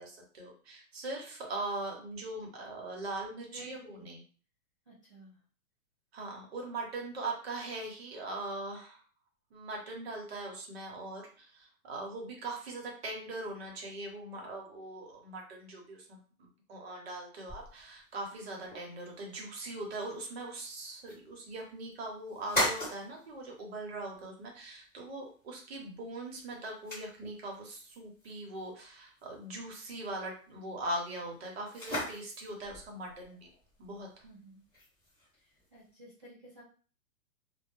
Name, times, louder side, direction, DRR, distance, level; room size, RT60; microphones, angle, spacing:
voice 1, 0.0-4.2 6.1-9.0 9.5-16.2 16.7-33.4 33.8-34.1, right 2 dB, 45° right, 0 dB, 0.8 m, -41 dB
voice 2, 3.5-4.1 4.9-5.4 18.3-18.6 34.2-34.6 35.3-36.6, right 2 dB, 25° right, -12 dB, 0.4 m, -53 dB
sound 1, 17.5-35.9, left 1 dB, 5° left, 1.1 m, -42 dB
2.1 x 2.0 x 3.0 m, 0.41 s
hypercardioid pair, 170°, 45 cm